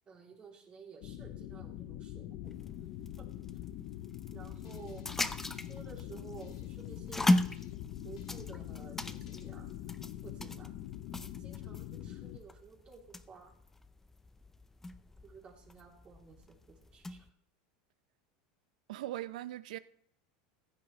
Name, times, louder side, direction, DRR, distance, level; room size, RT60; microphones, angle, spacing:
voice 1, 0.1-2.6 3.2-3.3 4.3-5.1 5.5-7.4 8.0-9.7 10.2-10.7 11.4-13.5 15.2-17.3, right 5 dB, 25° right, 3.2 m, -53 dB
sound 1, 1.0-12.4, left 12 dB, 55° left, 0.8 m, -44 dB
sound 2, 2.4-17.3, left 1 dB, 10° left, 0.6 m, -38 dB
sound 3, 4.4-9.7, left 7 dB, 75° left, 1.5 m, -55 dB
voice 2, 18.9-19.8, right 14 dB, 80° right, 0.7 m, -40 dB
15.0 x 10.0 x 3.3 m
supercardioid pair, 125°, 4 cm